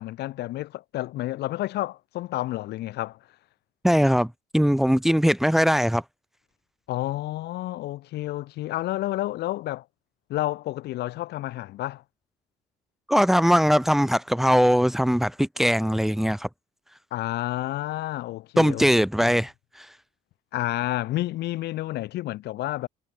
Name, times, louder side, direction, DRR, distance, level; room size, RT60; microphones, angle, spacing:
voice 1, 0.0-3.2 6.9-9.8 10.3-12.0 17.1-18.9 19.2-19.3 20.5-22.9, left 16 dB, 75° left, 7.0 m, -30 dB
voice 2, 3.8-6.0 13.1-16.5 18.6-19.5 19.8-19.9, equal, ahead, 2.0 m, -21 dB
cardioid pair, 110°, 17 cm